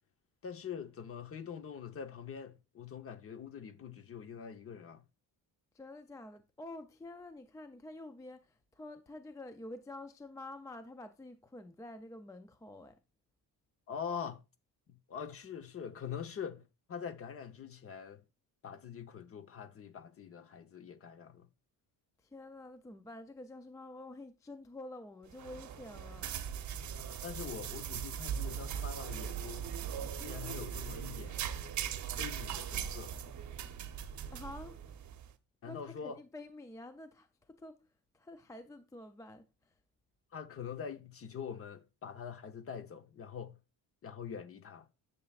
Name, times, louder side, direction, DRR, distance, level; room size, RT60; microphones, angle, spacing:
voice 1, 0.4-5.0 13.9-14.4 15.1-16.6 16.9-18.2 18.6-21.5 27.2-29.7 30.1-31.4 32.2-33.2 35.6-36.2 40.3-43.6 44.0-44.8, left 7 dB, 35° left, 0.9 m, -44 dB
voice 2, 5.7-13.0 22.2-26.3 34.3-34.8 35.6-37.9 38.1-39.7, left 2 dB, 10° left, 0.3 m, -48 dB
sound 1, 25.3-35.3, right 8 dB, 50° right, 0.8 m, -40 dB
10.5 x 6.9 x 2.4 m
cardioid pair, 155°, 38 cm